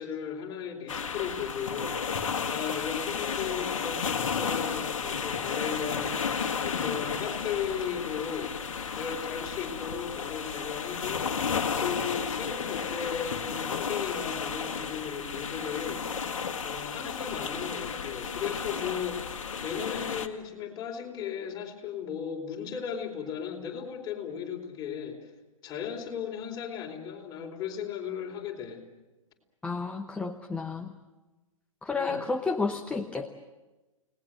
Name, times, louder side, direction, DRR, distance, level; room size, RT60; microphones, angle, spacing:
voice 1, 0.0-2.1 2.4-6.2 6.6-8.5 9.0-11.3 11.8-16.3 16.6-19.3 19.6-25.2 25.6-28.8 31.9-32.3, left 7 dB, 25° left, 1 dB, 4.4 m, -36 dB
sound 1, 0.9-20.3, left 6 dB, 65° left, 1.8 m, -33 dB
voice 2, 29.6-30.9 31.8-33.3, left 4 dB, 5° left, 4 dB, 1.0 m, -31 dB
30.0 x 19.5 x 7.9 m, 1.1 s
figure-of-eight pair, 120°, 18 cm